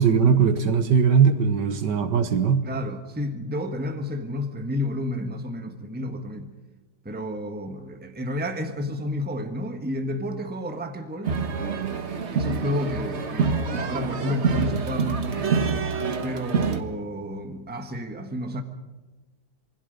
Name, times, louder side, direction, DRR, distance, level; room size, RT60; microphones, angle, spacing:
voice 1, 0.0-2.7, right 6 dB, 65° right, 10 dB, 1.8 m, -20 dB
voice 2, 2.6-6.5 7.0-11.4 12.3-15.5 16.2-18.6, left 1 dB, 5° right, 6 dB, 1.2 m, -31 dB
sound 1, 11.2-16.8, right 5 dB, 40° right, 1.3 m, -26 dB
27.5 x 21.0 x 5.3 m, 1.2 s
omnidirectional pair, 2.1 m